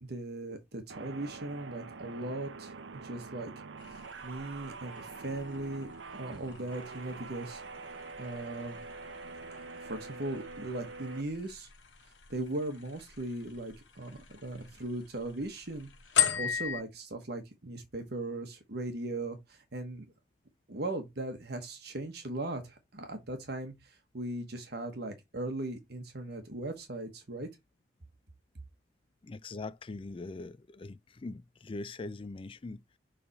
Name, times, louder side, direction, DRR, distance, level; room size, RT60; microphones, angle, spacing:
voice 1, 0.0-2.7 3.0-3.5 3.9-7.6 8.2-8.8 9.8-11.7 12.0-15.9 16.4-20.0 20.7-27.5, right 2 dB, 60° right, 1.1 m, -38 dB
sound 1, 0.9-11.2, right 4 dB, 75° right, 0.6 m, -45 dB
sound 2, 3.8-16.8, left 10 dB, 85° left, 0.9 m, -39 dB
voice 2, 29.2-33.0, left 3 dB, 30° left, 0.4 m, -42 dB
7.0 x 3.4 x 4.0 m
head